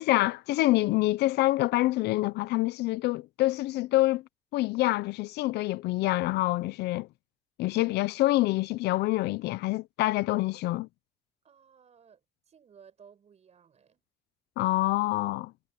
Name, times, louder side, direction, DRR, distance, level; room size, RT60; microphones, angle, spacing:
voice 1, 0.0-4.2 4.5-7.1 7.6-10.9 14.6-15.5, left 18 dB, 80° left, 0.6 m, -26 dB
voice 2, 11.4-14.0, right 7 dB, 40° right, 5.0 m, -57 dB
cardioid pair, 110°, 17 cm